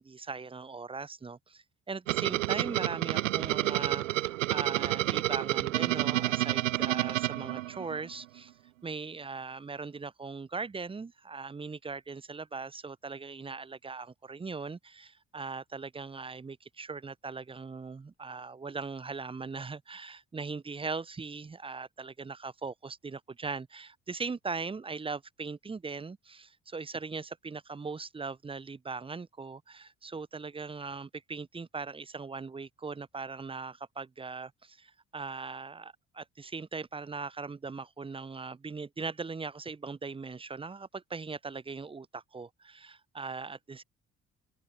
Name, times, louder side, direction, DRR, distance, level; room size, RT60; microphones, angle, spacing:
voice 1, 0.0-8.5 8.8-43.8, right 4 dB, 15° right, 0.6 m, -40 dB
sound 1, 2.1-8.1, right 16 dB, 80° right, 0.6 m, -29 dB
figure-of-eight pair, 45°, 38 cm